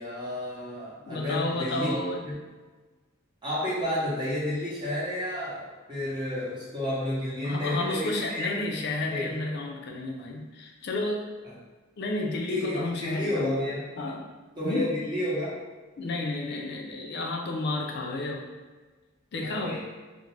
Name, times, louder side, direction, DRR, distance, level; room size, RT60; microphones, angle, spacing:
voice 1, 0.0-1.9 2.2-2.3 3.4-9.3 12.5-13.8 14.5-15.5 19.4-19.8, left 1 dB, 25° right, -9 dB, 0.9 m, -31 dB
voice 2, 1.1-2.3 7.4-11.2 12.0-13.6 14.0-14.3 14.6-15.0 16.0-18.5 19.3-19.8, left 2 dB, 55° left, 1 dB, 0.4 m, -31 dB
2.5 x 2.1 x 3.1 m, 1.3 s
head